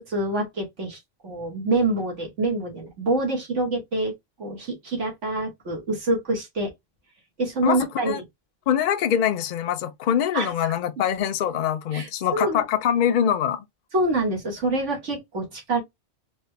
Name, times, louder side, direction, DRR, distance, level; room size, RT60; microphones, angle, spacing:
voice 1, 0.0-4.1 4.4-6.7 7.4-8.1 10.3-10.5 11.9-12.6 13.9-15.8, right 2 dB, 80° right, 1.8 m, -26 dB
voice 2, 8.7-13.6, left 9 dB, 55° left, 0.6 m, -23 dB
4.3 x 2.2 x 3.2 m
omnidirectional pair, 1.2 m